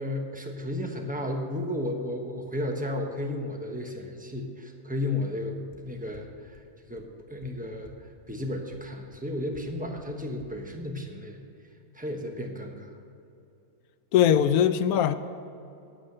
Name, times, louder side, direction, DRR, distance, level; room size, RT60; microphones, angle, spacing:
voice 1, 0.0-11.4 11.9-13.0, left 1 dB, 5° right, 2 dB, 1.0 m, -33 dB
sound 1, 5.7-5.8 6.1-6.2 6.5-6.6 7.0-7.1 7.4-7.5 7.8-7.9 8.3-8.4 8.7-8.8 9.1-9.2 9.5-9.6 10.0-10.1 10.4-10.5, left 4 dB, 40° left, 1.4 m, -51 dB
voice 2, 14.1-15.1, left 9 dB, 85° left, 12 dB, 1.1 m, -21 dB
10.0 x 8.8 x 6.6 m, 2.7 s
omnidirectional pair, 1.5 m